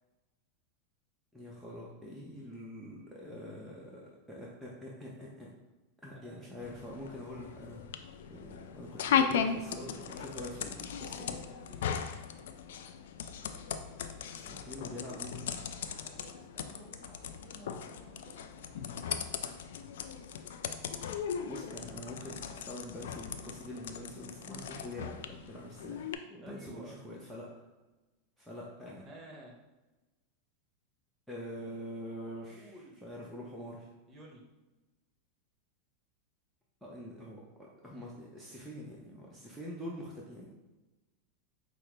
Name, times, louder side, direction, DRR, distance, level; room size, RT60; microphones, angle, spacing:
voice 1, 1.3-5.5 6.0-7.9 8.3-11.4 14.3-15.6 21.4-27.5 28.4-29.1 31.3-32.7 33.0-33.9 36.8-40.5, left 1 dB, ahead, -5 dB, 0.7 m, -45 dB
voice 2, 6.1-6.6 9.4-10.5 11.1-12.0 16.0-19.2 26.4-27.1 29.0-29.6 32.5-33.0 34.1-34.5, right 1 dB, 25° right, -1 dB, 1.2 m, -54 dB
sound 1, 6.6-26.1, left 7 dB, 75° left, 0.3 m, -37 dB
5.6 x 2.0 x 3.3 m, 1.1 s
hypercardioid pair, 105°, 0 cm